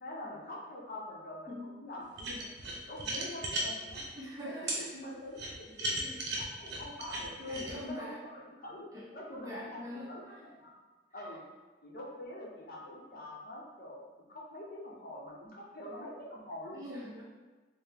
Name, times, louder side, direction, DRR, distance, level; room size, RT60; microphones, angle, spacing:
voice 1, 0.0-2.5 2.9-4.0 4.5-6.0 6.4-8.9 9.1-9.8 10.1-10.7 11.1-11.4 11.8-14.0 14.3-16.8, left 1 dB, 50° left, -4 dB, 0.7 m, -45 dB
sound 1, 2.2-4.1 4.7-4.8 5.4-7.7, right 1 dB, 65° right, 0.8 m, -36 dB
voice 2, 4.2-4.9 6.0-6.2 7.5-8.2 8.9-10.1 16.7-17.2, left 1 dB, 20° right, -5 dB, 0.8 m, -43 dB
4.6 x 2.1 x 3.4 m, 1.3 s
head